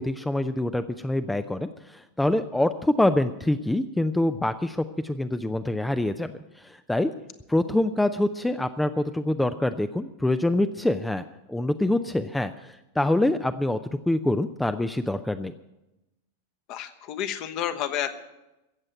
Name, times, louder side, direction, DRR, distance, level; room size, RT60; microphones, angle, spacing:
voice 1, 0.0-6.3 6.6-7.1 7.5-13.8 14.1-15.5, left 1 dB, 5° left, 11 dB, 0.5 m, -25 dB
voice 2, 16.7-18.1, left 10 dB, 40° left, 8 dB, 1.1 m, -30 dB
15.5 x 7.7 x 9.0 m, 0.98 s
figure-of-eight pair, 90°, 0 cm